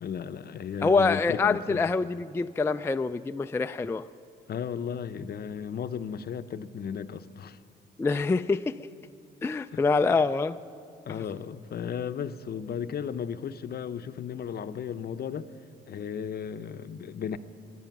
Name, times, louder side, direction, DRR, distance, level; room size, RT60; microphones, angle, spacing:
voice 1, 0.0-1.9 4.5-7.6 9.7-9.8 10.1-10.2 11.1-15.5 15.9-17.4, left 7 dB, 50° left, 11 dB, 0.7 m, -35 dB
voice 2, 0.8-4.0 8.0-8.9 9.4-10.6 11.1-11.2, left 4 dB, 10° left, 9 dB, 0.3 m, -25 dB
20.5 x 10.5 x 6.0 m, 2.6 s
supercardioid pair, 70°, 20 cm